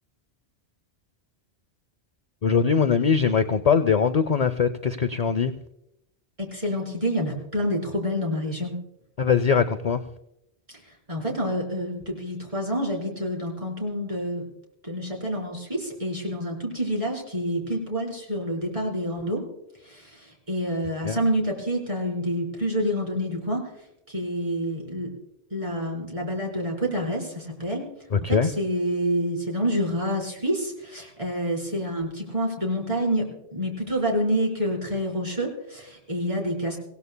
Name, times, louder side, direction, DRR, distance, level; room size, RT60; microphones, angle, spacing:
voice 1, 2.4-5.6 9.2-10.0 21.0-21.2 28.1-28.5, left 6 dB, 50° left, 10 dB, 0.5 m, -21 dB
voice 2, 6.4-8.8 10.7-10.8 11.1-14.4 14.8-19.4 19.8-23.6 24.1-25.1 25.5-27.8 28.3-36.8, equal, 30° right, -2 dB, 4.2 m, -28 dB
24.5 x 16.5 x 2.2 m, 0.83 s
omnidirectional pair, 1.1 m